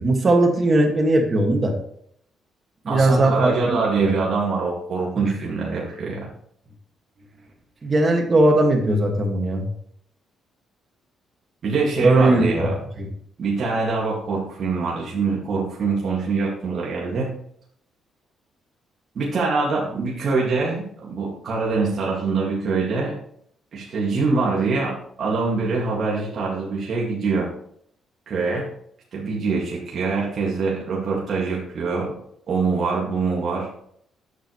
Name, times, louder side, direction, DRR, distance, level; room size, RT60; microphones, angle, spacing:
voice 1, 0.0-1.7 2.8-4.2 5.2-5.3 7.8-9.7 12.0-12.7 13.0-13.1, right 2 dB, 35° right, 3 dB, 1.8 m, -19 dB
voice 2, 2.9-6.3 11.6-12.8 13.4-17.3 19.2-23.2 23.7-27.5 28.3-28.7 29.1-32.2 32.5-33.7, right 4 dB, 55° right, -4 dB, 2.0 m, -24 dB
9.1 x 6.7 x 3.1 m, 0.69 s
cardioid pair, 90°, 0 cm